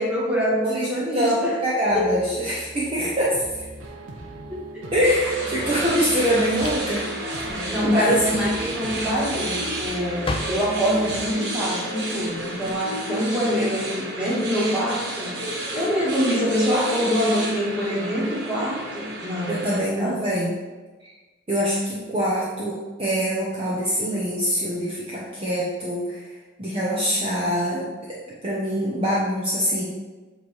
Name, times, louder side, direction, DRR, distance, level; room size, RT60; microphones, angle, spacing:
voice 1, 0.0-1.6 1.9-2.1 4.5-4.8 7.4-15.3 15.7-19.6 20.0-20.2, equal, 5° right, -7 dB, 1.8 m, -25 dB
voice 2, 1.1-3.4 4.9-8.4 19.5-20.5 21.5-26.2 26.6-29.8, equal, 30° right, -6 dB, 0.9 m, -24 dB
sound 1, 1.9-11.3, right 2 dB, 85° right, 0.9 m, -40 dB
Drawer open or close, 3.1-12.7, left 2 dB, 25° left, 0.5 m, -38 dB
sound 2, 5.0-19.8, right 1 dB, 60° right, 1.2 m, -31 dB
7.9 x 3.2 x 4.6 m, 1.3 s
head